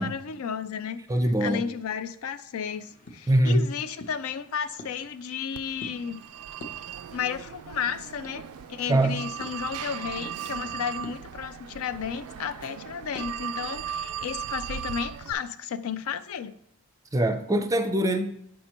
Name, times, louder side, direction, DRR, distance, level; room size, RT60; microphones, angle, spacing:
voice 1, 0.0-1.0 1.4-6.2 7.1-16.6, left 7 dB, 80° left, 0.4 m, -33 dB
voice 2, 1.1-1.6 3.3-3.7 8.9-9.2 17.1-18.3, right 1 dB, 15° right, 0.4 m, -23 dB
sound 1, 2.5-13.4, left 1 dB, 35° left, 0.7 m, -49 dB
Telephone, 5.5-15.3, right 9 dB, 80° right, 0.3 m, -37 dB
7.6 x 5.5 x 2.9 m
head